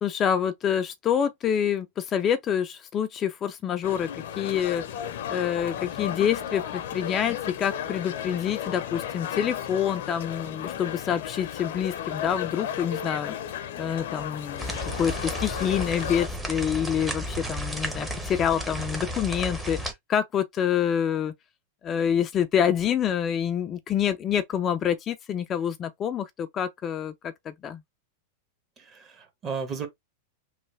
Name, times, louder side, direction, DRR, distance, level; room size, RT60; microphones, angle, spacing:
voice 1, 0.0-4.1 4.4-4.8 5.3-13.3 13.8-19.8 20.1-21.3 21.8-27.8, left 8 dB, 30° left, 0.4 m, -27 dB
sound 1, 3.8-16.3, left 9 dB, 70° left, 0.7 m, -34 dB
sound 2, 14.6-19.9, equal, 5° right, 0.8 m, -33 dB
voice 2, 28.8-29.9, right 5 dB, 30° right, 1.1 m, -34 dB
3.1 x 2.2 x 3.2 m
hypercardioid pair, 120°, 0 cm